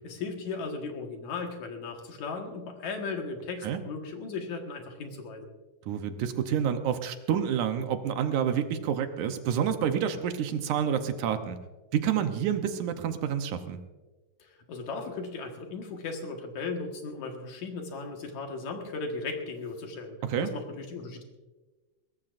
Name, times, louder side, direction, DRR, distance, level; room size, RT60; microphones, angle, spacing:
voice 1, 0.0-5.5 14.4-21.2, left 4 dB, 65° left, 3 dB, 2.9 m, -37 dB
voice 2, 5.9-11.6 11.9-13.8 20.2-20.5, right 8 dB, 75° right, 8 dB, 2.2 m, -28 dB
22.0 x 18.5 x 2.6 m, 1.2 s
omnidirectional pair, 3.7 m